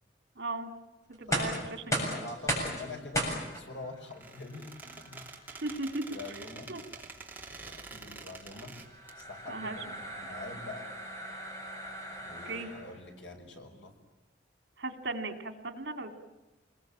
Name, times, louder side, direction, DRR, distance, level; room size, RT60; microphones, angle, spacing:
voice 1, 0.4-0.7 1.2-2.3 5.6-6.0 6.7-6.8 9.5-9.8 12.4-12.7 14.8-16.1, right 2 dB, 70° right, 8 dB, 2.8 m, -37 dB
sound 1, 1.1-13.0, right 1 dB, 15° left, 7.4 m, -38 dB
voice 2, 2.0-5.2 6.1-6.7 7.5-8.8 9.1-10.9 12.2-13.9, left 3 dB, 85° left, 4 dB, 5.8 m, -45 dB
Squeak, 4.1-9.2, right 3 dB, 10° right, 3.1 m, -47 dB
28.0 x 21.5 x 8.8 m, 1.1 s
head